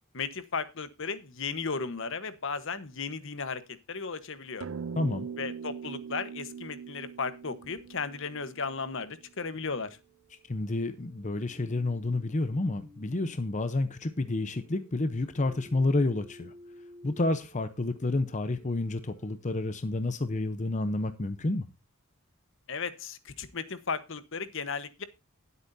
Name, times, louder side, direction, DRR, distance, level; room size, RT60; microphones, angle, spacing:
voice 1, 0.1-4.7 5.4-10.0 22.7-25.0, left 5 dB, 65° left, 1.2 m, -35 dB
sound 1, 4.6-9.3, right 6 dB, 65° right, 0.5 m, -41 dB
voice 2, 5.0-5.3 10.5-16.5 17.0-21.7, left 2 dB, 35° left, 0.8 m, -30 dB
sound 2, 6.2-19.3, equal, 20° right, 3.2 m, -56 dB
19.0 x 8.2 x 2.7 m
head